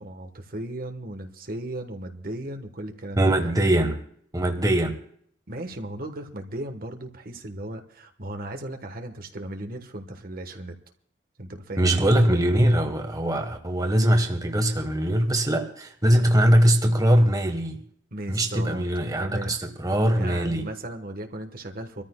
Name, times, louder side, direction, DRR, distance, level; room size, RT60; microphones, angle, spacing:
voice 1, 0.0-3.3 5.5-10.7 11.4-12.0 18.1-18.8 19.2-19.5 20.2-22.0, right 1 dB, 50° right, 1.2 m, -36 dB
voice 2, 3.2-4.0 4.3-5.0 11.8-17.8 18.3-20.7, right 1 dB, 20° right, 1.3 m, -22 dB
25.5 x 14.0 x 2.2 m
head